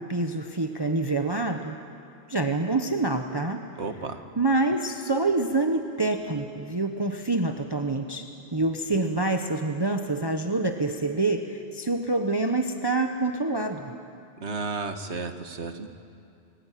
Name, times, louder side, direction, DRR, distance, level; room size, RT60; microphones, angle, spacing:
voice 1, 0.0-1.8 2.3-3.7 4.4-8.3 8.5-13.9, right 2 dB, 20° right, 5 dB, 1.1 m, -26 dB
voice 2, 3.8-4.2 14.4-15.9, right 4 dB, 70° right, 7 dB, 1.8 m, -33 dB
29.0 x 21.5 x 9.2 m, 2.5 s
omnidirectional pair, 1.2 m